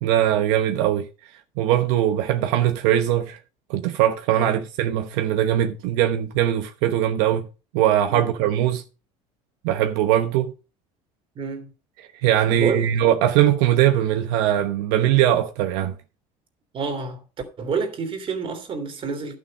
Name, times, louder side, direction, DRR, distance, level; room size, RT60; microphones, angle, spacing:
voice 1, 0.0-1.1 1.6-3.4 3.7-7.4 7.7-8.8 9.6-10.5 12.2-15.9, right 11 dB, 85° right, 1.0 m, -21 dB
voice 2, 11.3-11.7 12.5-12.9 16.7-17.2 17.6-19.4, right 5 dB, 40° right, 3.0 m, -28 dB
11.5 x 6.5 x 5.3 m
cardioid pair, 120°, 14 cm